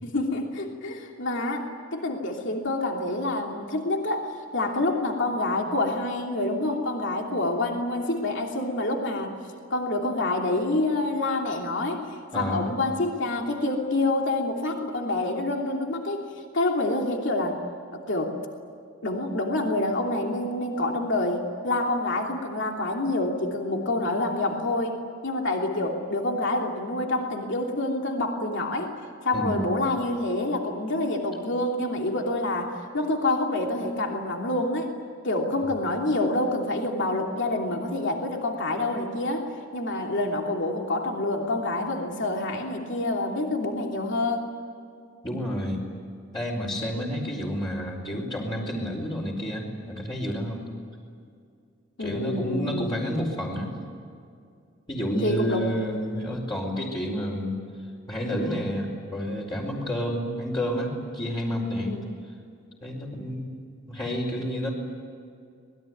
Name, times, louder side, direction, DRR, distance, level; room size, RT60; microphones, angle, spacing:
voice 1, 0.0-9.4 9.7-12.1 12.3-16.3 16.5-17.6 17.9-18.4 19.0-24.9 25.2-28.9 29.2-34.9 35.2-39.5 39.7-44.5 52.0-53.1 55.2-55.7 61.8-62.1, left 2 dB, 65° left, 1 dB, 3.0 m, -27 dB
voice 2, 12.3-12.7 29.3-29.7 45.2-45.8 46.3-50.6 52.0-53.7 54.9-57.6 58.1-61.9 62.8-63.5 63.9-64.7, equal, 20° left, -3 dB, 4.5 m, -29 dB
26.5 x 21.0 x 9.4 m, 2.3 s
head